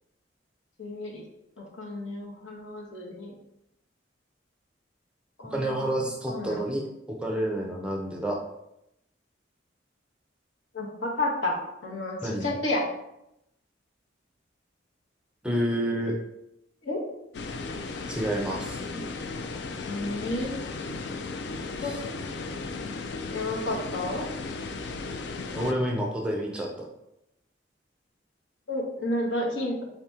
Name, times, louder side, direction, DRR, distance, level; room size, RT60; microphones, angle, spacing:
voice 1, 0.8-1.2 1.6-3.3 5.4-5.9 6.3-6.6 10.7-11.6 11.8-12.8 16.8-17.0 18.9-19.1 19.8-20.6 21.8-21.9 23.3-24.3 28.7-29.8, left 1 dB, 75° left, -2 dB, 1.1 m, -31 dB
voice 2, 5.5-6.8 7.1-8.4 12.2-12.5 15.4-16.2 18.1-18.8 21.8-21.9 25.5-26.9, right 1 dB, 5° right, -1 dB, 0.5 m, -29 dB
sound 1, 17.3-25.7, left 3 dB, 60° left, 0.4 m, -35 dB
4.1 x 2.9 x 3.5 m, 0.84 s
head